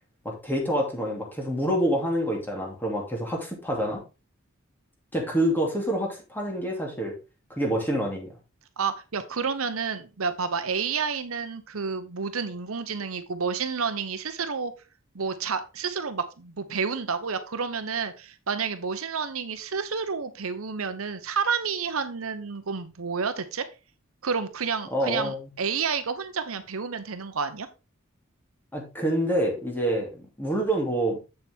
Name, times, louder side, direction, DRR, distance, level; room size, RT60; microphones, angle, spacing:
voice 1, 0.2-4.0 5.1-7.1 7.6-8.3 24.9-25.5 28.7-31.2, right 1 dB, 10° left, 0 dB, 2.7 m, -27 dB
voice 2, 8.8-14.7 15.1-23.6 24.2-27.7, right 5 dB, 75° right, 10 dB, 0.9 m, -30 dB
7.7 x 7.2 x 3.5 m, 0.29 s
head